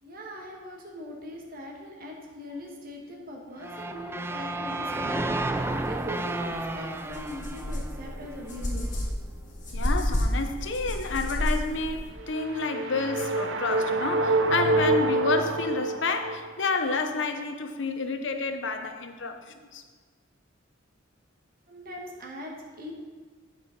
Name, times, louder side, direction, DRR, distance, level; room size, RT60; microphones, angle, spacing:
voice 1, 0.0-9.0 21.7-22.9, left 1 dB, 50° right, 0 dB, 1.5 m, -41 dB
sound 1, 3.6-8.7, right 2 dB, 10° right, 0.3 m, -32 dB
sound 2, 6.5-6.6 7.1-12.1, equal, 40° left, 1.6 m, -30 dB
voice 2, 9.7-19.8, left 4 dB, 65° left, 6 dB, 0.7 m, -30 dB
sound 3, 12.2-16.5, right 2 dB, 70° right, 0.6 m, -26 dB
9.3 x 5.0 x 5.1 m, 1.5 s
head